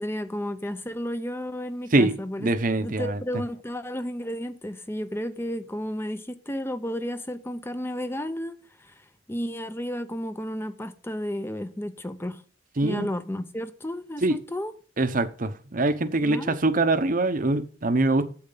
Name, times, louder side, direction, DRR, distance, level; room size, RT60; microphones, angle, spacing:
voice 1, 0.0-2.5 2.8-12.4 12.8-14.7 16.2-16.6, equal, 10° left, 0.7 m, -32 dB
voice 2, 1.9-3.2 12.8-13.1 14.2-14.4 15.0-18.2, right 2 dB, 45° right, 0.9 m, -24 dB
8.7 x 7.9 x 3.9 m
head